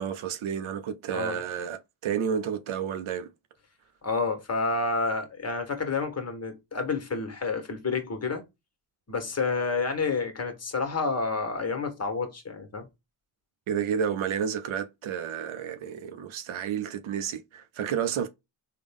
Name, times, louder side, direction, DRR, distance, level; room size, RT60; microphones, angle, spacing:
voice 1, 0.0-3.3 13.7-18.3, right 8 dB, 80° right, 0.6 m, -31 dB
voice 2, 4.0-8.4 9.1-12.9, left 4 dB, 30° left, 1.2 m, -29 dB
3.5 x 2.2 x 3.5 m
supercardioid pair, 40°, 48 cm